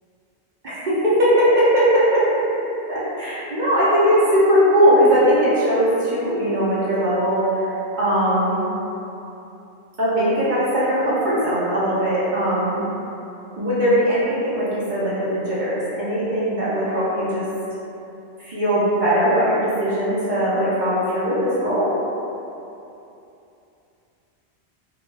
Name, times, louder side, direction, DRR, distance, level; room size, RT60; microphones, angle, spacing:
voice 1, 0.6-2.3 2.9-8.6 10.0-12.8 13.6-17.5 18.4-21.9, equal, 50° right, -10 dB, 0.7 m, -19 dB
2.3 x 2.1 x 3.2 m, 2.8 s
omnidirectional pair, 1.2 m